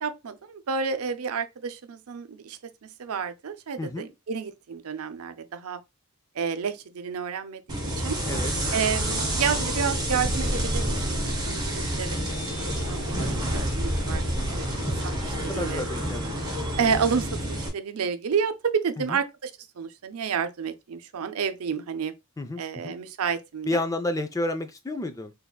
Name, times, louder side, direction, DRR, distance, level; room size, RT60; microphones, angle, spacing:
voice 1, 0.0-5.8 6.3-7.6 8.0-8.2 8.7-12.2 12.6-14.7 15.0-15.8 16.8-19.5 19.8-22.1 22.6-23.8, right 6 dB, 85° right, 0.5 m, -30 dB
voice 2, 3.8-4.1 8.3-8.5 11.9-12.1 15.4-16.4 19.0-19.2 22.4-23.0 23.7-25.3, left 1 dB, 15° left, 0.4 m, -31 dB
sound 1, 7.7-17.7, right 1 dB, 20° right, 1.2 m, -28 dB
3.7 x 3.4 x 2.3 m
head